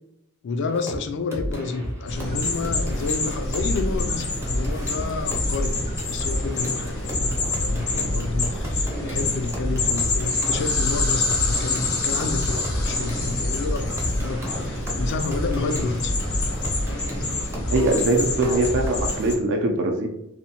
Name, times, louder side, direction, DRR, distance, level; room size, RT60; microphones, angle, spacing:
voice 1, 0.4-16.1, left 4 dB, 55° left, 7 dB, 0.3 m, -30 dB
sound 1, 0.7-1.0 1.3-19.3, equal, 15° right, 0.5 m, -30 dB
sound 2, 2.1-19.3, left 3 dB, 85° left, 0.8 m, -27 dB
voice 2, 17.7-20.1, right 2 dB, 60° right, 3 dB, 0.5 m, -22 dB
2.7 x 2.1 x 2.8 m, 0.87 s
head